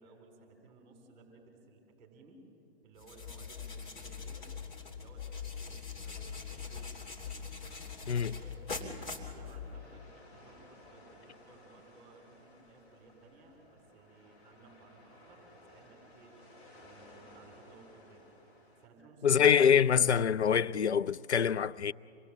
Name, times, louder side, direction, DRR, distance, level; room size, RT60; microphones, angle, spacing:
voice 1, 0.0-2.4 2.8-4.5 4.9-7.0 7.6-7.9 8.2-16.3 16.8-18.3 18.8-19.6, right 3 dB, 20° right, 4.1 m, -58 dB
sound 1, 3.0-10.0, left 5 dB, 45° left, 3.2 m, -42 dB
sound 2, 7.2-18.9, left 1 dB, 30° left, 4.7 m, -58 dB
voice 2, 19.2-21.9, left 7 dB, 85° left, 0.6 m, -25 dB
26.5 x 20.5 x 7.4 m
figure-of-eight pair, 135°, 33 cm